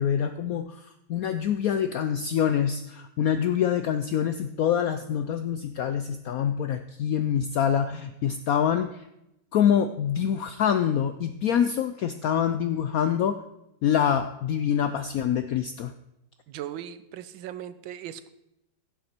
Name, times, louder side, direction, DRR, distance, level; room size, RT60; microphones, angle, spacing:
voice 1, 0.0-9.0 9.5-13.4 13.8-15.9, left 8 dB, 80° left, 10 dB, 0.8 m, -25 dB
voice 2, 16.5-18.3, right 11 dB, 85° right, 13 dB, 1.4 m, -38 dB
15.5 x 7.4 x 4.4 m, 0.87 s
omnidirectional pair, 2.1 m